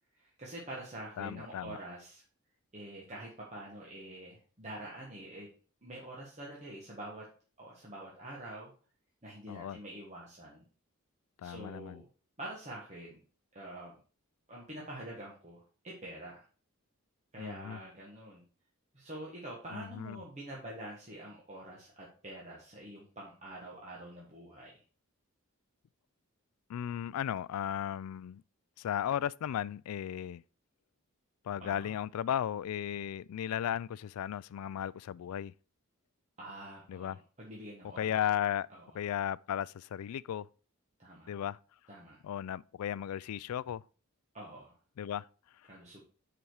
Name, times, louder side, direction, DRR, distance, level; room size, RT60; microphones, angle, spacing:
voice 1, 0.1-2.2 2.7-5.5 5.8-7.3 7.6-8.7 9.2-10.6 11.4-12.1 12.4-13.2 13.5-14.0 14.5-16.5 17.3-18.4 18.9-24.8 31.6-31.9 36.4-38.1 38.7-39.0 41.0-41.3 41.9-42.2 44.3-44.8 45.7-46.0, right 1 dB, 30° right, 1.5 m, -46 dB
voice 2, 1.2-1.8 9.5-9.8 11.4-12.0 17.4-17.8 19.7-20.2 26.7-28.4 28.8-30.4 31.5-35.5 36.9-37.2 38.0-38.7 38.9-40.5 41.3-41.6 42.2-43.8 45.0-45.3, left 10 dB, 80° left, 0.3 m, -35 dB
7.1 x 5.1 x 4.6 m
head